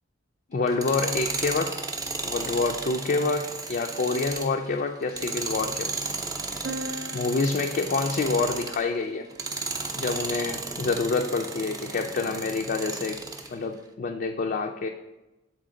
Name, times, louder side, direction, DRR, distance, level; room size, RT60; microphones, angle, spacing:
voice 1, 0.5-1.8 2.2-6.0 7.1-9.3 9.9-13.2 13.5-14.9, left 3 dB, 50° left, 3 dB, 0.4 m, -27 dB
Tools, 0.7-8.9 9.3-13.5, right 3 dB, 20° right, 0.6 m, -34 dB
sound 1, 6.6-10.4, right 1 dB, 70° right, 0.4 m, -41 dB
7.4 x 4.3 x 3.8 m, 0.99 s
head